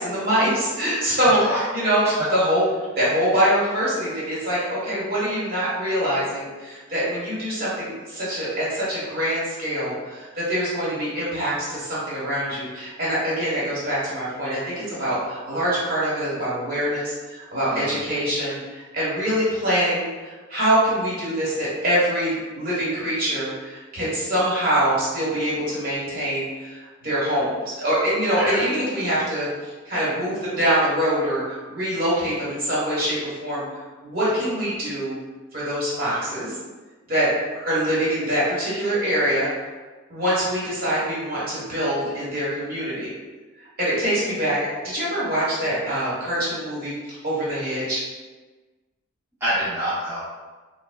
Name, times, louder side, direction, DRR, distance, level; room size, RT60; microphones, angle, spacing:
voice 1, 0.0-2.0 2.3-2.7 3.0-35.2 35.5-36.5 37.1-39.5 40.1-43.1 43.6-48.0, equal, 45° right, -9 dB, 1.1 m, -24 dB
voice 2, 1.2-1.6 2.0-2.1 17.7-18.0 28.4-28.6 49.4-50.2, equal, 10° right, -11 dB, 0.4 m, -27 dB
3.2 x 2.1 x 2.2 m, 1.3 s
head